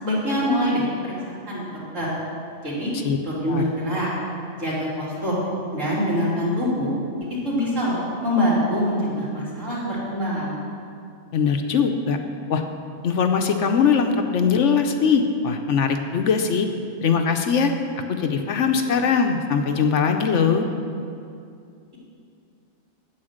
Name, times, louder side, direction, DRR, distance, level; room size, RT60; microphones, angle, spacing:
voice 1, 0.0-2.1 2.6-2.9 3.2-4.1 4.6-5.4 5.7-7.0 7.4-10.6, equal, 65° right, -8 dB, 3.6 m, -24 dB
voice 2, 11.3-12.2 12.5-12.6 13.0-16.7 17.0-17.7 18.1-20.7, left 6 dB, 65° left, 5 dB, 1.0 m, -21 dB
9.7 x 8.5 x 6.5 m, 2.5 s
omnidirectional pair, 1.4 m